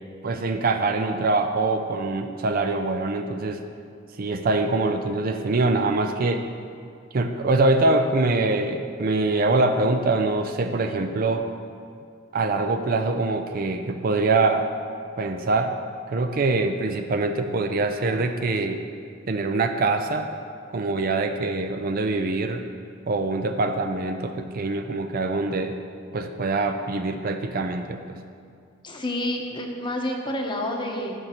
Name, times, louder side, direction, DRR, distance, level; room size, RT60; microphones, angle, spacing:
voice 1, 0.2-3.6 4.2-6.5 7.1-11.4 12.3-14.7 15.2-15.7 16.1-18.8 19.3-20.3 20.7-22.6 23.1-25.8 26.1-28.0, right 3 dB, 45° right, 6 dB, 0.4 m, -24 dB
voice 2, 28.8-31.1, left 1 dB, 25° left, 1 dB, 0.9 m, -29 dB
15.5 x 6.5 x 2.9 m, 2.3 s
head